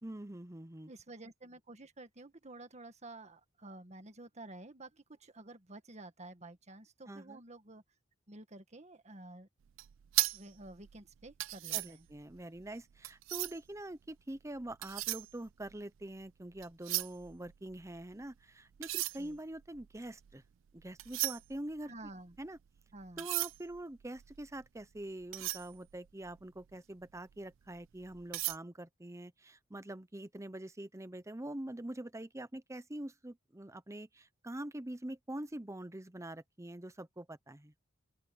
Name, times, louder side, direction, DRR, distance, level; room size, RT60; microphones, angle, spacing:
voice 1, 0.0-0.9 7.1-7.4 11.7-20.4 20.7-21.9 22.4-22.6 23.2-37.7, right 1 dB, 15° right, 0.8 m, -45 dB
voice 2, 0.9-7.8 8.3-9.5 10.3-12.1 19.1-19.4 21.9-22.3 22.9-23.3, right 2 dB, 35° right, 1.7 m, -51 dB
sound 1, 9.7-13.8 14.5-16.2 16.5-18.2 18.7-26.7 27.2-27.3 27.7-28.6, right 19 dB, 80° right, 0.4 m, -38 dB
open air
head